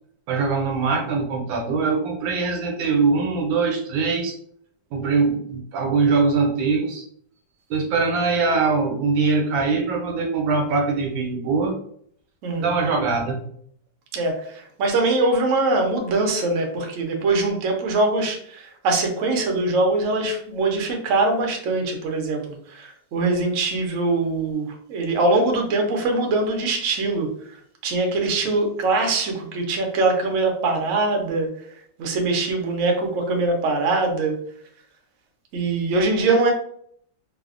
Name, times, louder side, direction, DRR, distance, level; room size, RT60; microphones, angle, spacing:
voice 1, 0.3-4.3 4.9-7.0 7.7-11.8 12.6-13.4, right 4 dB, 85° right, 2 dB, 1.4 m, -22 dB
voice 2, 14.1-27.3 27.8-31.5 32.0-34.3 35.5-36.5, right 2 dB, 65° right, 2 dB, 0.8 m, -22 dB
3.3 x 2.0 x 2.4 m, 0.62 s
omnidirectional pair, 2.0 m